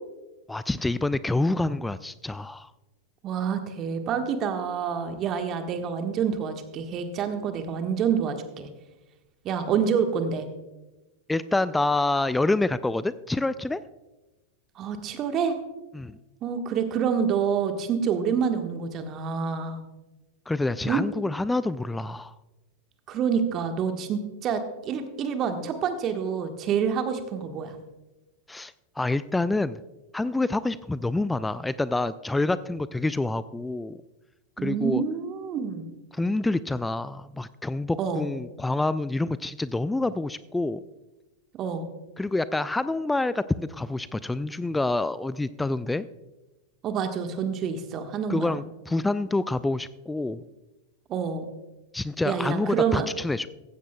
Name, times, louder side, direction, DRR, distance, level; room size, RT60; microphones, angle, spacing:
voice 1, 0.5-2.7 11.3-13.8 15.9-16.2 20.5-22.3 28.5-29.8 30.1-34.0 34.6-35.0 36.1-40.8 42.2-46.1 48.3-50.4 51.9-53.5, left 2 dB, 5° left, 17 dB, 0.3 m, -27 dB
voice 2, 3.2-8.7 9.4-10.4 14.7-15.6 16.4-19.8 20.9-21.1 23.1-27.8 34.6-35.9 38.0-38.3 41.5-41.9 46.8-48.6 51.1-51.4 52.2-53.1, right 7 dB, 30° right, 6 dB, 1.3 m, -27 dB
16.0 x 15.0 x 2.3 m, 1.1 s
figure-of-eight pair, 90°, 0 cm